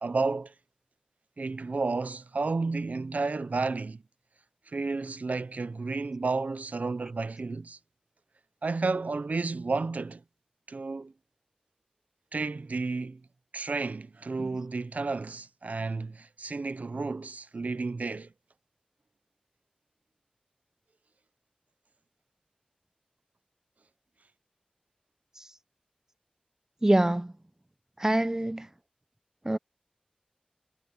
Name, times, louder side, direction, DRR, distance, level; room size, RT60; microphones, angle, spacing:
voice 1, 0.0-0.5 1.4-4.0 4.7-7.8 8.6-10.2 10.7-11.1 12.3-13.2 13.5-18.3, right 3 dB, 85° right, 0.7 m, -31 dB
voice 2, 26.8-27.3 28.0-28.6 29.5-29.6, right 1 dB, 20° right, 0.7 m, -24 dB
wide cardioid pair, 70°, 3 cm